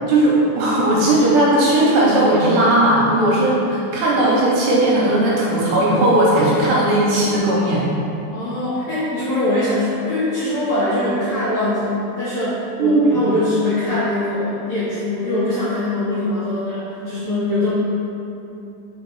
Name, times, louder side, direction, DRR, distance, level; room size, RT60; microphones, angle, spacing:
voice 1, 0.0-7.9 12.8-13.0, right 1 dB, 75° right, -5 dB, 2.1 m, -17 dB
voice 2, 8.3-17.7, left 1 dB, 65° left, -11 dB, 1.7 m, -22 dB
5.1 x 4.0 x 4.6 m, 2.8 s
omnidirectional pair, 4.2 m